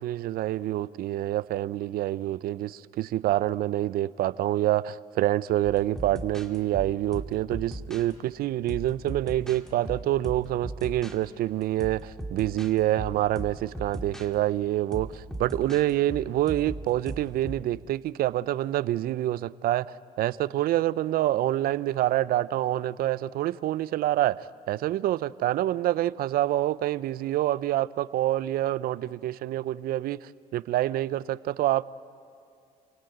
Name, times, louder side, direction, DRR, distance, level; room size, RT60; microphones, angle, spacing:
voice 1, 0.0-31.9, right 14 dB, 60° right, 0.6 m, -27 dB
sound 1, 5.6-8.1 8.7-11.2 11.6-14.3 14.9-17.7, right 1 dB, 5° left, 2.5 m, -38 dB
29.0 x 17.5 x 9.1 m
supercardioid pair, 75°, 17 cm